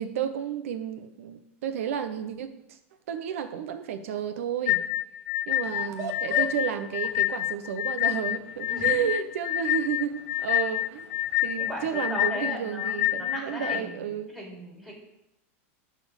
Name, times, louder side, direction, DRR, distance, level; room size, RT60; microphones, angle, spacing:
voice 1, 0.0-2.8 3.1-4.8 5.5-11.1 11.4-14.3, right 9 dB, 75° right, 10 dB, 0.9 m, -32 dB
sound 1, 4.7-13.8, left 16 dB, 50° left, 0.5 m, -27 dB
sound 2, 5.6-12.1, right 4 dB, 40° right, 1.3 m, -43 dB
voice 2, 5.7-6.4 8.7-9.3 11.7-14.9, equal, 5° right, -3 dB, 3.3 m, -39 dB
11.0 x 4.4 x 5.3 m, 0.87 s
supercardioid pair, 125°, 7 cm